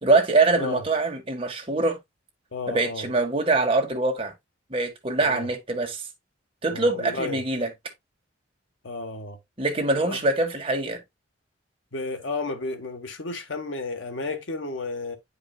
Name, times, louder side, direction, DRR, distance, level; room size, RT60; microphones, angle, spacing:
voice 1, 0.0-2.0 2.7-4.3 4.7-6.0 6.6-7.7 9.6-11.0, right 3 dB, 30° right, 1.6 m, -23 dB
voice 2, 2.5-3.0 5.2-5.5 6.7-7.4 8.8-9.4 10.0-10.2 11.9-15.2, left 3 dB, 85° left, 1.4 m, -32 dB
10.0 x 4.9 x 2.3 m
head